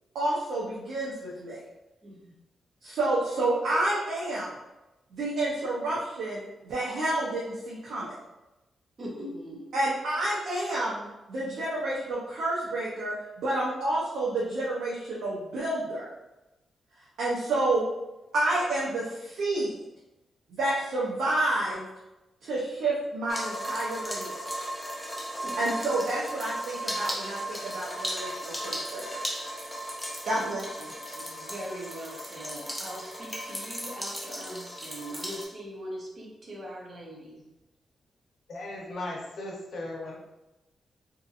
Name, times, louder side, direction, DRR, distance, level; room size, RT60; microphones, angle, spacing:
voice 1, 0.1-1.6 2.8-4.5 5.1-8.2 9.7-16.1 17.2-17.8 18.3-19.7 20.5-21.9 22.4-24.7 25.6-29.5 30.2-30.9, right 2 dB, 85° right, -6 dB, 0.6 m, -29 dB
voice 2, 2.0-2.3 9.0-9.9 25.4-25.7 30.1-30.3 31.2-37.4, equal, 35° right, -3 dB, 0.7 m, -41 dB
sound 1, 23.3-35.5, equal, 5° left, 0.5 m, -36 dB
voice 3, 38.5-40.1, left 2 dB, 60° left, -3 dB, 0.7 m, -37 dB
2.7 x 2.6 x 2.4 m, 0.99 s
wide cardioid pair, 155°, 0 cm